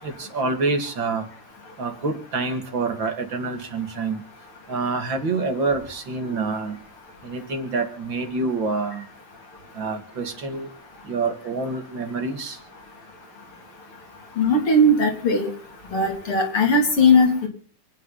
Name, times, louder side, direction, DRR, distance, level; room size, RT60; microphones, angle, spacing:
voice 1, 0.0-1.2 1.8-4.2 4.7-6.8 7.2-9.1 9.7-10.7 11.1-12.6, right 3 dB, 60° right, 5 dB, 2.9 m, -27 dB
voice 2, 14.4-15.5 15.9-17.5, left 1 dB, 85° left, 2 dB, 3.8 m, -18 dB
27.5 x 9.3 x 4.1 m, 0.42 s
omnidirectional pair, 2.4 m